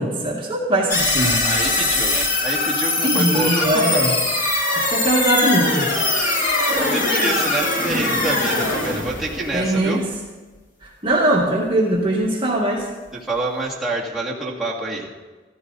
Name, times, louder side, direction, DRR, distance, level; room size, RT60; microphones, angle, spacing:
voice 1, 0.0-1.4 3.0-4.1 4.8-5.9 8.9-9.0 9.5-10.1 10.8-12.9, right 1 dB, 25° right, -3 dB, 1.9 m, -21 dB
sound 1, 0.9-10.1, left 2 dB, 45° left, 2.4 m, -21 dB
voice 2, 1.2-3.7 6.2-10.0 13.3-15.1, right 2 dB, ahead, -7 dB, 2.5 m, -27 dB
15.0 x 14.5 x 4.1 m, 1.3 s
head